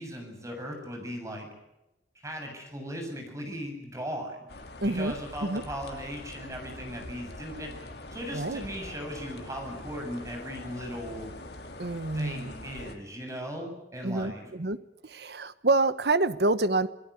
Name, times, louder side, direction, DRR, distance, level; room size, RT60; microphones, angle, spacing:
voice 1, 0.0-1.5 2.2-4.5 4.8-7.7 8.1-11.3 12.1-14.5, equal, 20° right, 3 dB, 7.4 m, -38 dB
sound 1, 4.5-13.0, left 2 dB, 65° left, 3.1 m, -43 dB
voice 2, 4.8-5.1 5.4-5.6 8.3-8.6 11.8-12.5 14.0-14.8 15.0-16.9, right 2 dB, 65° right, 14 dB, 1.1 m, -27 dB
28.0 x 18.0 x 8.3 m, 0.96 s
head